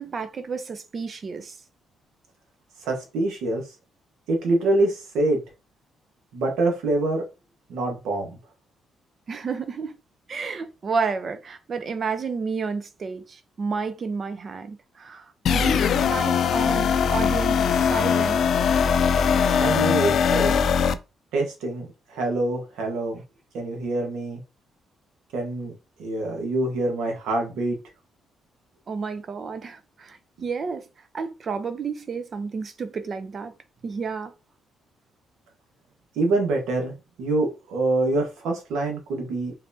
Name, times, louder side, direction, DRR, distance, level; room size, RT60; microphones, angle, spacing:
voice 1, 0.0-1.5 9.3-10.0 10.3-18.4 28.9-30.9 31.1-33.5 33.8-34.3, right 5 dB, 45° right, 0.6 m, -31 dB
voice 2, 2.8-3.6 4.3-5.4 6.3-7.2 7.7-8.4 19.5-20.6 21.3-23.2 23.5-24.4 25.3-25.7 26.0-27.8 36.1-36.9 37.2-39.5, right 2 dB, 90° right, 1.4 m, -25 dB
sound 1, 15.5-20.9, left 7 dB, 65° left, 0.3 m, -21 dB
4.0 x 3.3 x 2.7 m
cardioid pair, 90°, 0 cm